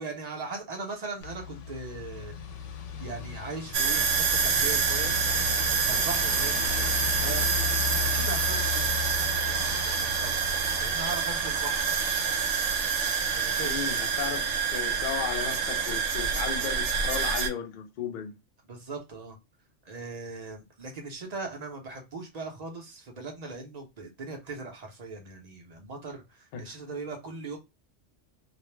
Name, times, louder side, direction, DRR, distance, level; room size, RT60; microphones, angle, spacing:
voice 1, 0.0-2.4 3.0-5.2 5.9-7.5 8.0-9.0 9.5-10.4 10.8-11.8 13.3-13.8 18.6-19.4 19.8-27.6, right 3 dB, 45° right, 0.6 m, -39 dB
sound 1, 1.2-12.9, left 9 dB, 75° left, 0.9 m, -36 dB
sound 2, 3.7-17.5, right 6 dB, 75° right, 1.0 m, -27 dB
voice 2, 13.6-18.4 26.5-26.6, left 8 dB, 55° left, 0.6 m, -35 dB
2.4 x 2.0 x 3.0 m
omnidirectional pair, 1.3 m